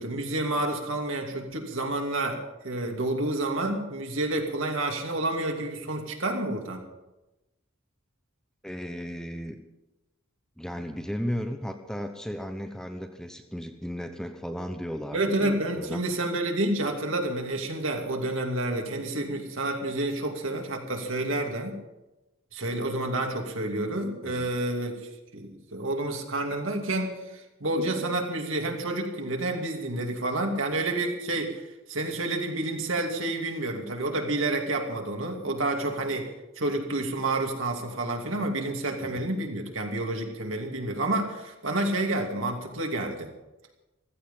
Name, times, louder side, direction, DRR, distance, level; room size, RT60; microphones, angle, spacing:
voice 1, 0.0-6.8 15.1-21.8 22.5-36.3 36.6-43.3, right 2 dB, 70° right, 2 dB, 2.6 m, -29 dB
voice 2, 8.6-9.6 10.6-16.0 24.2-24.5 39.0-39.2, equal, 5° left, 6 dB, 0.9 m, -35 dB
15.5 x 14.5 x 5.6 m, 1.0 s
head